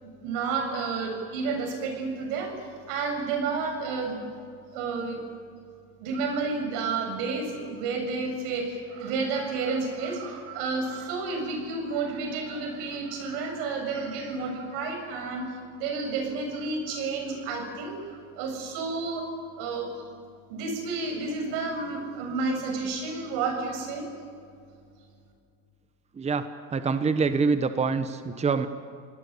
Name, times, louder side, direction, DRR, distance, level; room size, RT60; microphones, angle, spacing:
voice 1, 0.0-2.5 2.9-4.2 4.7-5.2 6.0-18.0 18.3-19.3 19.6-19.9 20.5-24.0, right 4 dB, 80° right, 4 dB, 7.2 m, -31 dB
voice 2, 26.7-28.7, right 5 dB, 20° right, 10 dB, 1.1 m, -25 dB
28.5 x 18.5 x 8.7 m, 2.4 s
supercardioid pair, 120°, 32 cm